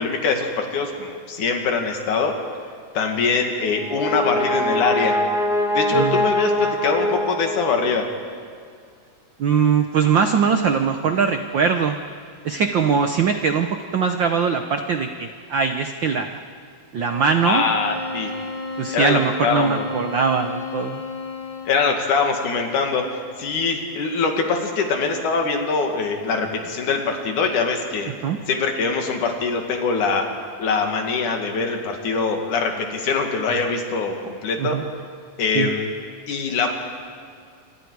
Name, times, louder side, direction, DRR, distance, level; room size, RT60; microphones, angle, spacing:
voice 1, 0.0-2.4 3.0-5.2 5.7-8.1 17.5-18.3 18.9-19.8 21.7-28.1 28.5-30.3 30.6-34.8 35.4-35.9 36.3-36.7, left 4 dB, 85° left, 3 dB, 3.5 m, -23 dB
Brass instrument, 3.6-8.0, left 1 dB, ahead, 2.8 m, -23 dB
voice 2, 5.9-6.2 9.4-12.0 12.4-16.4 16.9-17.6 18.8-21.0 28.2-28.4 34.6-34.8 35.5-35.7, right 6 dB, 80° right, 6 dB, 1.0 m, -21 dB
sound 1, 17.0-21.9, left 3 dB, 25° left, 3.4 m, -32 dB
28.0 x 25.0 x 4.8 m, 2.2 s
omnidirectional pair, 3.4 m